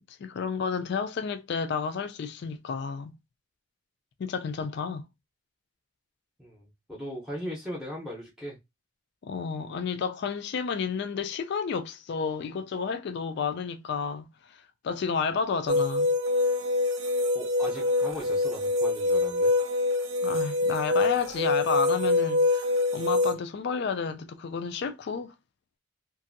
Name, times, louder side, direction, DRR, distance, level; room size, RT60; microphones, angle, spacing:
voice 1, 0.2-3.1 4.2-5.0 9.2-14.3 14.8-16.1 20.2-22.6 22.9-25.3, left 5 dB, 55° left, 0.3 m, -31 dB
voice 2, 6.4-8.6 17.3-19.5, equal, 5° right, 0.7 m, -38 dB
sound 1, 15.7-23.3, left 2 dB, 75° right, 0.5 m, -25 dB
2.6 x 2.6 x 2.5 m
head